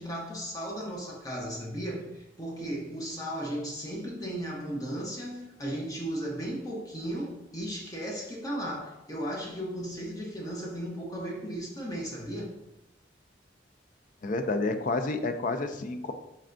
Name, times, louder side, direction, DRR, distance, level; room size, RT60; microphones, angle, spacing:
voice 1, 0.0-12.5, right 1 dB, 20° left, -2 dB, 0.7 m, -35 dB
voice 2, 14.2-16.1, left 3 dB, 45° left, 8 dB, 0.3 m, -29 dB
4.2 x 3.4 x 2.5 m, 0.91 s
head